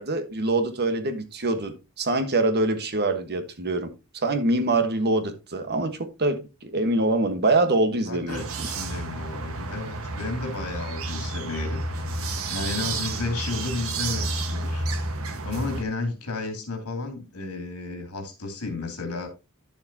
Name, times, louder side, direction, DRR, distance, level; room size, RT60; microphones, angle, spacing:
voice 1, 0.0-3.9 4.2-8.4, right 2 dB, 50° right, 1.3 m, -24 dB
voice 2, 8.1-11.8 12.2-14.9 15.4-19.3, left 3 dB, 80° left, 2.7 m, -32 dB
sound 1, 8.3-15.8, right 2 dB, 70° right, 1.4 m, -31 dB
10.5 x 7.2 x 2.8 m
head